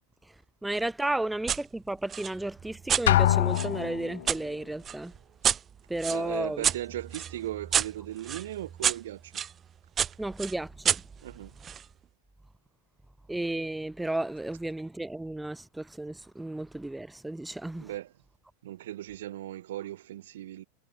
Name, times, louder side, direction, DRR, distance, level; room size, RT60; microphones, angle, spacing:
voice 1, 0.2-5.1 5.9-6.7 10.2-11.0 13.3-17.9, right 2 dB, 5° right, 3.7 m, -33 dB
sound 1, 1.5-1.6 2.1-4.4 4.8-9.5 10.0-11.8, right 8 dB, 30° right, 1.4 m, -30 dB
Drum, 3.1-4.3, left 14 dB, 70° left, 1.5 m, -24 dB
voice 2, 6.1-9.4 11.2-11.5 17.7-18.1 18.6-20.6, right 13 dB, 75° right, 5.0 m, -38 dB
hypercardioid pair, 90°, 0 cm